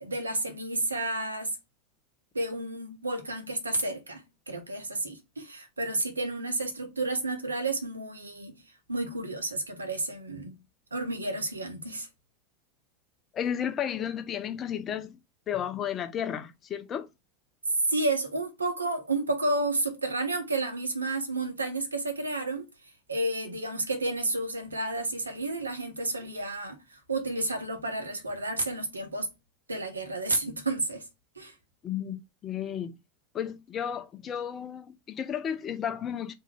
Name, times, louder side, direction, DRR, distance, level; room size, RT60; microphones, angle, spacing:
voice 1, 0.0-1.6 2.3-8.6 8.9-10.5 10.9-12.1 17.9-22.7 23.1-29.3 29.7-31.1 31.4-31.5, right 2 dB, 80° right, 0.9 m, -31 dB
voice 2, 13.3-15.2 15.5-17.1 31.8-33.0 33.3-36.3, left 9 dB, 30° left, 0.5 m, -33 dB
3.5 x 2.7 x 3.3 m
figure-of-eight pair, 80°, 0 cm